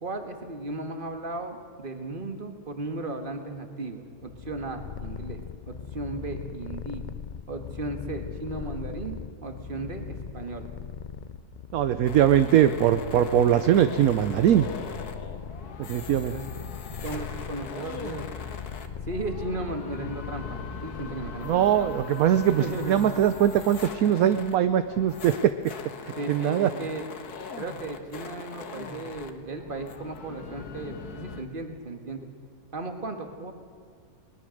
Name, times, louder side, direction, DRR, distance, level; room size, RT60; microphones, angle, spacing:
voice 1, 0.0-7.0 7.5-10.7 16.3-16.5 17.0-18.3 19.1-21.9 22.6-22.9 26.2-27.1 27.6-32.3 32.7-33.5, right 2 dB, 35° right, 6 dB, 1.9 m, -35 dB
Purr, 4.2-21.9, left 7 dB, 60° left, 0.5 m, -39 dB
voice 2, 11.7-14.6 15.8-16.3 21.4-25.5 26.3-26.7, right 10 dB, 70° right, 11 dB, 1.1 m, -21 dB
sound 1, 12.0-31.5, left 5 dB, 75° left, 1.8 m, -41 dB
21.5 x 20.0 x 6.5 m, 2.2 s
omnidirectional pair, 1.7 m